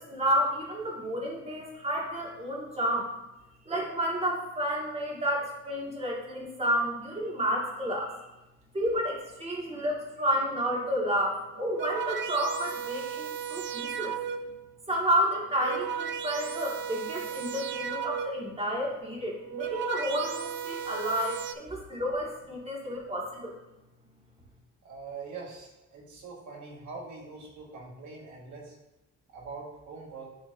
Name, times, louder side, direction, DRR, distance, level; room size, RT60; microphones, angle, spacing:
voice 1, 0.0-3.1 3.7-8.3 8.7-14.2 14.9-23.5, equal, 20° right, -2 dB, 1.8 m, -30 dB
sound 1, 11.5-14.7 15.4-18.6 19.3-21.5, right 8 dB, 40° right, 0.5 m, -35 dB
voice 2, 24.8-28.8 29.3-30.3, right 4 dB, 70° right, -2 dB, 1.8 m, -43 dB
10.5 x 3.5 x 2.7 m, 0.98 s
cardioid pair, 90°, 30 cm